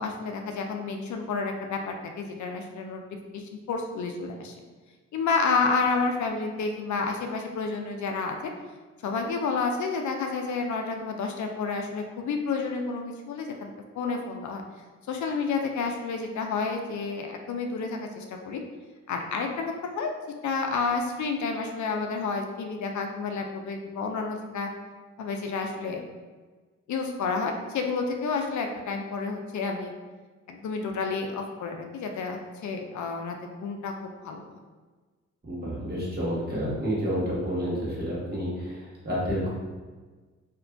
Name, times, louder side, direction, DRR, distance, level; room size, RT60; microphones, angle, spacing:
voice 1, 0.0-3.0 3.3-4.6 5.1-8.5 9.0-14.6 15.1-18.6 19.1-20.1 20.4-24.7 25.2-26.0 26.9-29.9 30.5-33.4 33.6-34.4, left 4 dB, 70° left, 3 dB, 0.5 m, -30 dB
voice 2, 35.4-39.5, equal, 30° right, -7 dB, 1.4 m, -29 dB
2.9 x 2.4 x 3.4 m, 1.3 s
cardioid pair, 75°, 30 cm